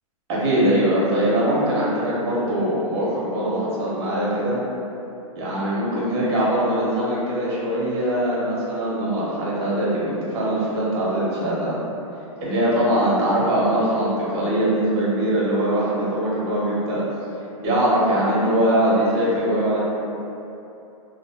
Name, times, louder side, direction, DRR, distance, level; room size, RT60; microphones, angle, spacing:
voice 1, 0.3-4.6 5.4-11.8 12.4-17.0 17.6-19.8, right 1 dB, 50° right, -7 dB, 0.9 m, -22 dB
2.6 x 2.0 x 2.8 m, 2.9 s
hypercardioid pair, 130°, 18 cm